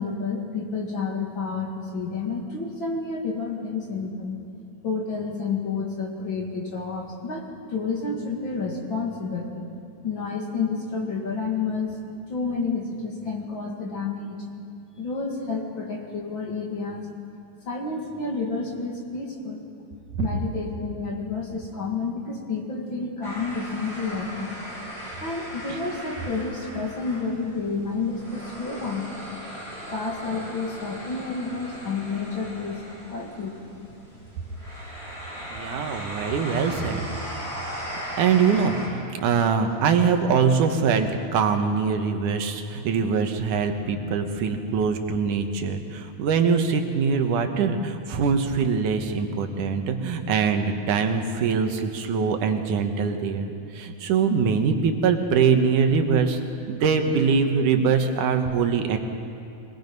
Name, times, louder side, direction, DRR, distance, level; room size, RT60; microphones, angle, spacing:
voice 1, 0.0-4.3 4.8-9.5 10.0-12.0 12.3-14.4 15.0-17.0 17.7-19.6 20.2-24.5 25.2-29.1 29.9-32.8 33.1-33.8, left 4 dB, 45° left, -1 dB, 2.6 m, -30 dB
sound 1, 23.2-38.9, equal, 10° left, 4.6 m, -38 dB
voice 2, 35.5-37.1 38.2-56.4 56.7-59.0, right 5 dB, 85° right, 5 dB, 2.8 m, -23 dB
25.0 x 19.5 x 5.4 m, 2.8 s
omnidirectional pair, 3.5 m